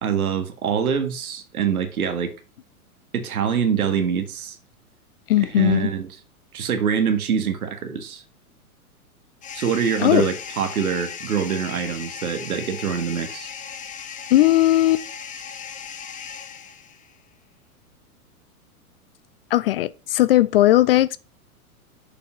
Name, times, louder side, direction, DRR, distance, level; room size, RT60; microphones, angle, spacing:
voice 1, 0.0-2.3 3.1-4.6 5.4-6.1 6.5-8.2 9.5-13.5, right 7 dB, 70° right, 1.8 m, -24 dB
voice 2, 5.3-5.9 10.0-10.3 14.3-15.0 19.5-21.2, left 15 dB, 45° left, 0.4 m, -17 dB
sound 1, 9.4-17.1, left 7 dB, 15° left, 0.9 m, -37 dB
6.9 x 5.4 x 5.9 m
hypercardioid pair, 110°, 45 cm